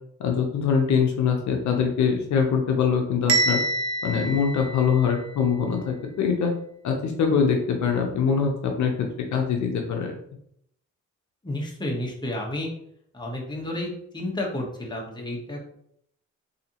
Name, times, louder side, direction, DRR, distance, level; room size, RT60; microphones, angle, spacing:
voice 1, 0.2-3.6 4.0-6.5 6.8-8.9 9.3-10.1, left 6 dB, 70° left, 2 dB, 0.7 m, -23 dB
Bell, 3.3-5.3, right 2 dB, 60° right, 0.8 m, -26 dB
voice 2, 11.4-12.7 13.1-15.7, left 1 dB, 15° left, -1 dB, 1.1 m, -31 dB
4.0 x 2.8 x 2.9 m, 0.71 s
cardioid pair, 90°, 30 cm